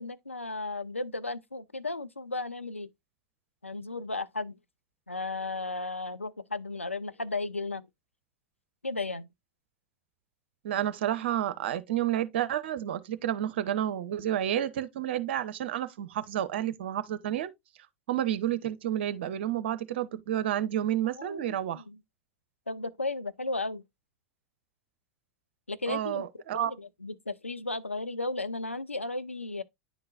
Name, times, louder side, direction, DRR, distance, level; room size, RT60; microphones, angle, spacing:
voice 1, 0.0-2.9 3.6-4.6 5.1-7.9 8.8-9.3 21.2-22.0 22.7-23.8 25.7-26.3 26.5-29.6, left 2 dB, 90° left, 0.4 m, -35 dB
voice 2, 10.6-17.5 18.1-21.8 25.9-26.7, right 11 dB, 60° right, 0.6 m, -30 dB
10.0 x 3.9 x 2.4 m
figure-of-eight pair, 85°, 7 cm